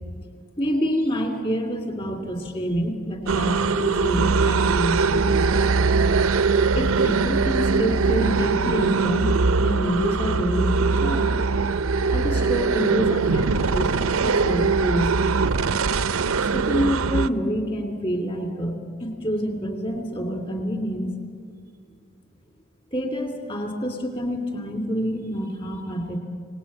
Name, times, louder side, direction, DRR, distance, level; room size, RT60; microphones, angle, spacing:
voice 1, 0.6-5.7 6.8-11.3 12.1-15.2 16.5-21.1 22.9-26.2, equal, 25° left, 3 dB, 2.7 m, -27 dB
sound 1, 3.3-17.3, right 4 dB, 75° right, 0.7 m, -21 dB
27.0 x 19.0 x 8.6 m, 2.1 s
head